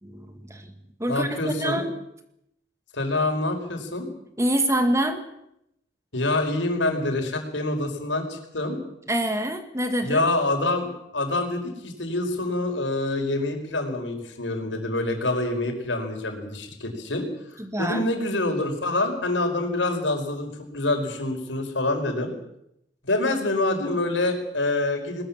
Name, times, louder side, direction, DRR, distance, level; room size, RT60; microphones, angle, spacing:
voice 1, 0.0-0.7 1.0-2.0 4.4-5.2 9.1-10.2 17.6-18.1, right 1 dB, 15° right, 7 dB, 2.0 m, -26 dB
voice 2, 1.1-1.8 2.9-4.1 6.1-8.8 10.0-17.3 17.8-22.3 23.0-25.2, left 2 dB, 90° left, 4 dB, 5.0 m, -26 dB
21.0 x 20.5 x 7.4 m, 0.80 s
head